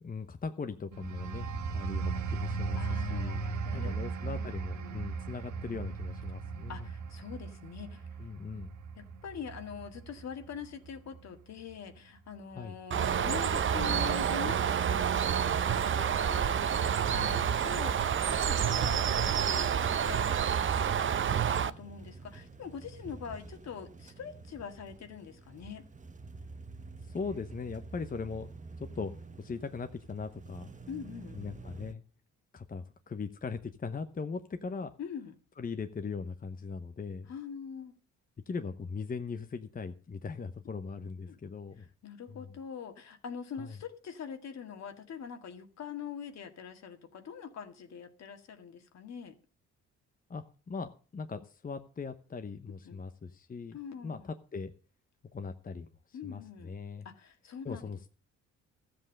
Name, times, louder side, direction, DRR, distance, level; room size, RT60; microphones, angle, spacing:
voice 1, 0.0-3.5 3.7-6.9 8.2-8.7 12.5-12.8 17.1-17.5 27.0-28.5 28.8-29.1 29.4-30.7 31.3-32.0 32.5-34.9 35.6-37.3 38.5-41.8 42.3-42.4 43.6-43.8 50.3-54.7 55.3-57.1 57.6-58.1, left 5 dB, 30° left, 0.9 m, -39 dB
sound 1, 0.9-11.3 11.7-12.0, right 5 dB, 70° right, 1.5 m, -37 dB
voice 2, 2.8-5.0 6.7-8.1 9.0-25.9 30.9-31.4 35.0-35.3 37.3-37.9 41.3-41.4 42.0-49.3 52.8-53.0 53.7-54.3 56.1-56.7 57.1-57.9, left 7 dB, 60° left, 2.0 m, -44 dB
Bird, 12.9-21.7, right 8 dB, 40° right, 0.7 m, -28 dB
sound 2, 19.4-31.9, right 3 dB, 25° right, 1.1 m, -48 dB
13.5 x 7.8 x 6.5 m
cardioid pair, 90°, 30 cm